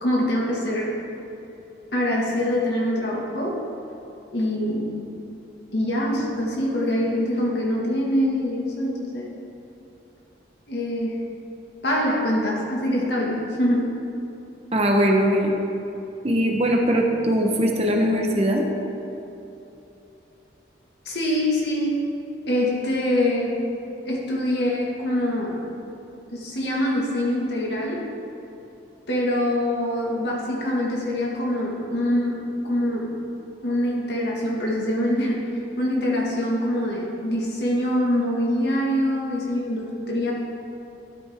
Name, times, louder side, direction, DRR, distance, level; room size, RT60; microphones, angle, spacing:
voice 1, 0.0-1.0 1.9-3.6 4.3-5.0 5.7-9.3 10.7-11.2 11.8-13.8 21.1-22.0 22.5-23.5 24.1-25.6 26.3-28.1 29.1-32.3 32.7-33.1 33.6-35.4 35.8-40.3, left 1 dB, 70° left, -3 dB, 2.0 m, -24 dB
voice 2, 14.7-15.5 16.2-18.7, equal, 35° right, 1 dB, 1.1 m, -20 dB
12.0 x 8.8 x 3.7 m, 2.8 s
head